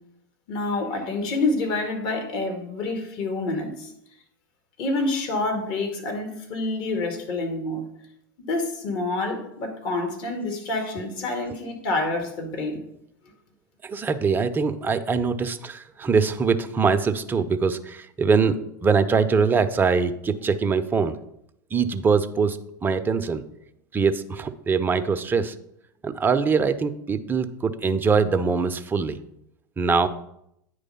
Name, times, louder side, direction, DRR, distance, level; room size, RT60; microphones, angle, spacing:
voice 1, 0.5-3.9 4.8-7.8 8.5-12.8, left 2 dB, 50° left, 4 dB, 1.7 m, -27 dB
voice 2, 13.8-21.2 21.7-23.4 23.9-25.5 26.0-29.2 29.8-30.1, right 5 dB, 20° right, 10 dB, 0.5 m, -23 dB
9.1 x 3.3 x 5.4 m, 0.76 s
hypercardioid pair, 90°, 10 cm